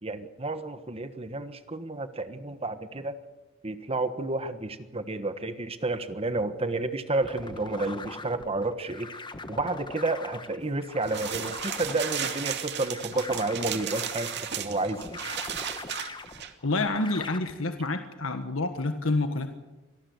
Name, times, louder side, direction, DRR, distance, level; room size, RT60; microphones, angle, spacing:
voice 1, 0.0-3.2 3.6-9.1 9.5-15.2, right 2 dB, 30° right, 10 dB, 1.3 m, -31 dB
sound 1, 7.2-17.4, left 3 dB, 25° left, 1.4 m, -41 dB
rummage drawers papers books, 11.0-16.5, right 9 dB, 60° right, 2.4 m, -35 dB
voice 2, 16.6-19.6, left 2 dB, 80° left, 7 dB, 1.6 m, -28 dB
25.5 x 18.5 x 8.0 m, 1.1 s
head